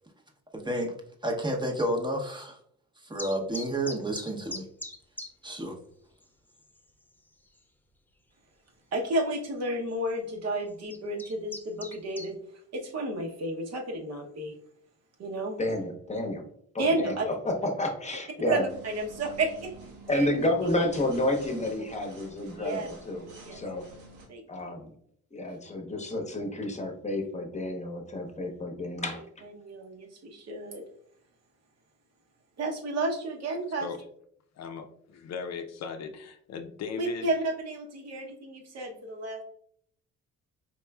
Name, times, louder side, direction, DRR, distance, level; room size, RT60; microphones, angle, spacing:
voice 1, 0.5-0.9 1.2-2.6 3.0-4.7 5.4-5.8, right 1 dB, 15° right, 2 dB, 0.7 m, -30 dB
sound 1, 3.2-5.3 5.6-5.7 6.2-6.3 6.5-7.0 7.6-7.7 9.0-9.1 9.9-10.1 10.7-12.3, left 2 dB, 5° left, 0.3 m, -40 dB
voice 2, 8.9-12.4 12.7-14.5 15.2-15.5 16.8-17.2 18.5-19.7 20.1-20.3 22.6-22.9 23.4-23.8 24.3-24.7 29.6-30.8 32.6-33.9 37.0-39.4, right 2 dB, 55° right, 2 dB, 0.9 m, -31 dB
voice 3, 15.6-16.4 17.0-18.6 20.1-23.8 24.5-24.9 25.3-29.4, left 1 dB, 25° left, 3 dB, 0.8 m, -30 dB
sound 2, 18.7-24.3, right 3 dB, 85° right, 1.1 m, -48 dB
voice 4, 34.6-37.3, left 6 dB, 60° left, 6 dB, 0.5 m, -38 dB
4.4 x 3.0 x 2.2 m, 0.67 s
cardioid pair, 90°, 30 cm